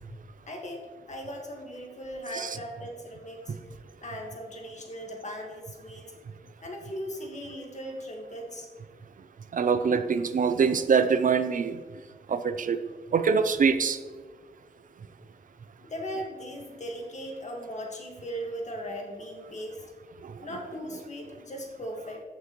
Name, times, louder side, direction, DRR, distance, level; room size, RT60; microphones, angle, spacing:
voice 1, 0.5-3.5 4.0-6.0 6.6-8.7 15.8-19.8 20.4-22.2, equal, 45° left, 1 dB, 1.7 m, -38 dB
voice 2, 9.5-11.8 12.3-12.8 13.1-14.0 20.2-20.3, right 6 dB, 55° right, 11 dB, 0.5 m, -24 dB
14.5 x 5.9 x 3.1 m, 1.5 s
wide cardioid pair, 165°, 16 cm